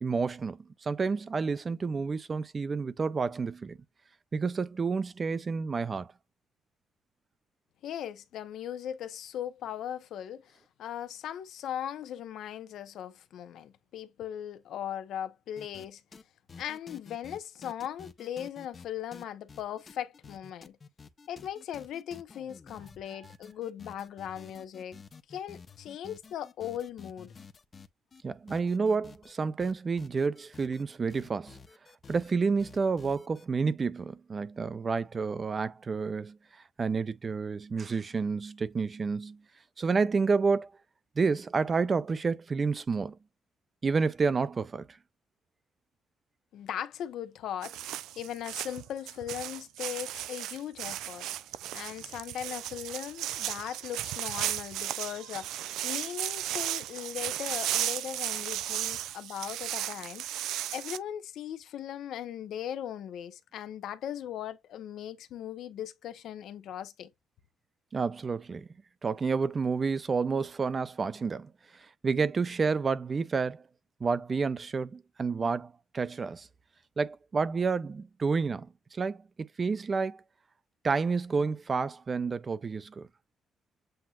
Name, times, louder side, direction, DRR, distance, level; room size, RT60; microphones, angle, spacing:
voice 1, 0.0-3.8 4.3-6.1 28.2-31.6 32.1-36.4 36.8-39.4 39.8-40.7 41.2-43.2 43.8-44.9 67.9-68.7 69.0-73.6 74.0-76.5 77.0-80.2 80.8-83.1, right 4 dB, 35° right, 0.5 m, -30 dB
voice 2, 7.8-16.0 16.5-20.8 21.3-25.0 25.3-27.3 46.5-51.3 51.7-60.2 60.7-67.1, left 10 dB, 75° left, 0.7 m, -39 dB
sound 1, 15.6-15.9 16.1-16.2 16.5-18.9 19.1-28.2 28.5-29.3 29.6-30.8 31.1-32.3 32.6-33.4, left 5 dB, 40° left, 0.6 m, -51 dB
sound 2, 47.6-61.0, right 13 dB, 90° right, 0.3 m, -35 dB
7.8 x 2.8 x 2.3 m
cardioid pair, 90°, 0 cm